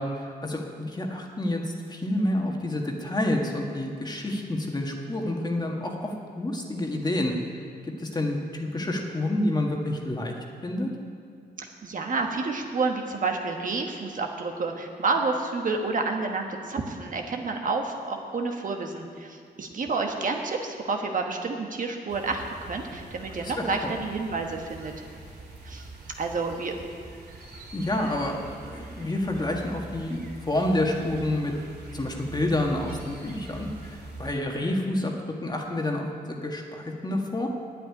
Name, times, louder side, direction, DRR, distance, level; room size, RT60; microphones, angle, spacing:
voice 1, 0.0-7.3 7.8-10.3 10.6-10.9 23.4-24.0 27.7-31.5 31.9-35.1 35.4-37.5, left 1 dB, 25° left, 1 dB, 1.6 m, -29 dB
voice 2, 11.6-24.9 25.6-25.9 26.2-26.8, right 3 dB, 50° right, 3 dB, 1.3 m, -29 dB
sound 1, 22.1-34.3, right 2 dB, 75° right, 2.9 m, -43 dB
9.2 x 8.4 x 9.6 m, 2.4 s
cardioid pair, 100°, 17 cm